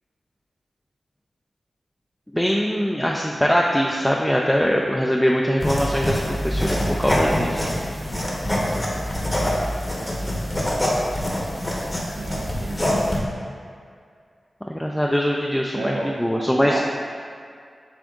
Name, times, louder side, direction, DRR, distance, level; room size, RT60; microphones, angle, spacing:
voice 1, 2.3-7.7 14.7-16.8, equal, 5° left, -1 dB, 0.3 m, -22 dB
sound 1, 5.6-13.2, equal, 25° left, 0.9 m, -25 dB
voice 2, 12.1-13.2 15.7-16.8, right 2 dB, 90° right, -3 dB, 0.4 m, -33 dB
7.2 x 2.5 x 2.4 m, 2.2 s
cardioid pair, 45°, 0 cm